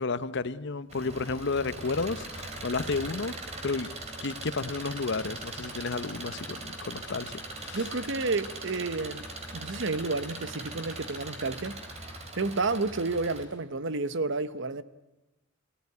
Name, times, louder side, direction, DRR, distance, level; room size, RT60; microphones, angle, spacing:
voice 1, 0.0-3.3 3.6-3.9 4.2-7.9, left 4 dB, 60° left, 0.8 m, -32 dB
Engine, 0.9-13.4, right 2 dB, 35° right, 3.5 m, -40 dB
voice 2, 7.7-9.3 9.5-11.8 12.4-14.8, right 3 dB, 60° right, 1.0 m, -30 dB
22.5 x 16.5 x 9.6 m
head